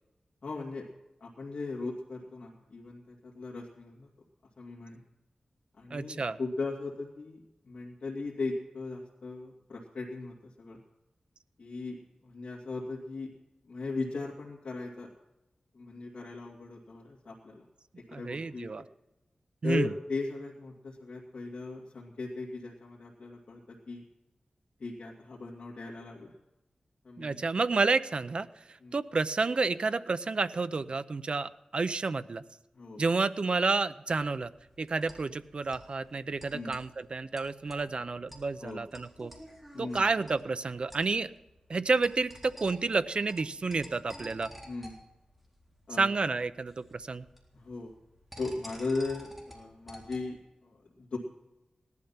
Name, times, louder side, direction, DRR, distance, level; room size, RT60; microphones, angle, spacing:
voice 1, 0.4-0.9 1.2-4.1 4.6-5.0 5.8-10.8 11.6-12.0 12.2-13.3 13.6-15.1 15.7-17.6 18.0-18.7 19.6-24.0 24.8-26.3 27.0-27.4 28.8-28.9 32.7-33.0 36.5-36.7 38.6-38.8 39.7-40.0 44.7-44.9 45.9-46.1 47.5-47.9 48.4-51.2, left 3 dB, 65° left, -4 dB, 2.6 m, -38 dB
voice 2, 5.9-6.4 18.1-18.8 19.6-19.9 27.2-32.4 33.0-34.5 34.8-39.3 39.8-41.3 41.7-44.5 46.0-47.2, right 4 dB, 50° right, 13 dB, 0.6 m, -30 dB
sound 1, 34.3-50.4, equal, 5° right, 3.9 m, -52 dB
18.0 x 12.0 x 5.8 m, 0.96 s
wide cardioid pair, 95°, 2 cm